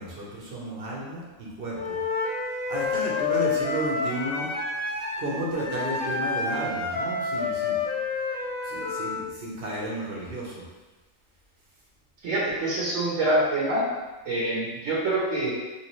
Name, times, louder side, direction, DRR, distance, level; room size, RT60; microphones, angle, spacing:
voice 1, 0.0-2.0 2.4-4.5 5.2-7.8 8.6-10.6, right 1 dB, 50° right, -4 dB, 0.9 m, -32 dB
Wind instrument woodwind instrument, 1.7-9.2, left 4 dB, 30° left, 0.9 m, -29 dB
voice 2, 12.2-13.9 14.2-15.5, right 1 dB, 70° right, -6 dB, 1.1 m, -25 dB
3.1 x 2.9 x 3.0 m, 1.2 s
omnidirectional pair, 1.4 m